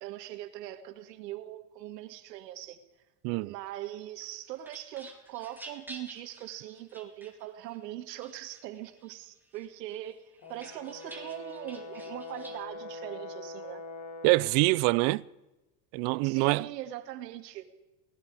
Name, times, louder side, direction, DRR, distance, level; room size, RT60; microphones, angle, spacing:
voice 1, 0.0-2.8 3.4-10.2 10.5-13.8 16.2-17.6, right 13 dB, 90° right, 2.3 m, -41 dB
sound 1, 4.2-7.8 8.2-9.1 9.5-12.6, right 2 dB, 5° right, 2.7 m, -50 dB
Brass instrument, 10.4-14.6, left 3 dB, 40° left, 3.2 m, -43 dB
voice 2, 14.2-15.2 15.9-16.7, right 24 dB, 55° right, 0.7 m, -25 dB
27.5 x 19.5 x 4.9 m
supercardioid pair, 130°, 48 cm